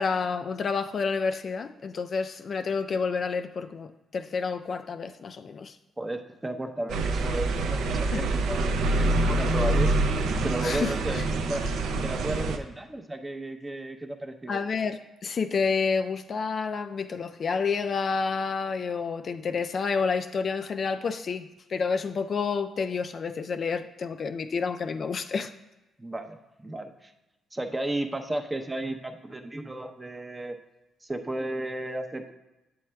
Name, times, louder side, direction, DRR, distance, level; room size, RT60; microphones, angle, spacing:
voice 1, 0.0-5.8 8.1-8.2 10.6-11.2 14.5-21.4 21.7-25.5, left 5 dB, 50° left, 8 dB, 0.3 m, -29 dB
voice 2, 6.0-11.7 12.0-14.6 26.0-27.1 27.5-30.6 31.0-32.3, right 1 dB, 15° right, 6 dB, 0.6 m, -34 dB
sound 1, 6.9-12.6, right 2 dB, 80° right, 0.5 m, -26 dB
8.3 x 7.0 x 2.2 m, 1.0 s
cardioid pair, 90°, 0 cm